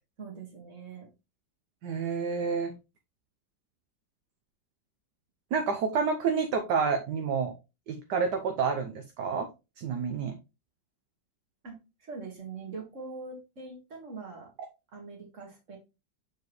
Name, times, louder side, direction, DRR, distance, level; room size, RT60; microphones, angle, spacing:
voice 1, 0.2-1.1 11.6-14.5 14.9-15.8, right 4 dB, 40° right, 1 dB, 2.1 m, -43 dB
voice 2, 1.8-2.7 5.5-7.5 7.9-9.5 9.8-10.3, right 5 dB, 65° right, 6 dB, 1.3 m, -29 dB
7.1 x 4.8 x 3.1 m, 0.27 s
omnidirectional pair, 2.0 m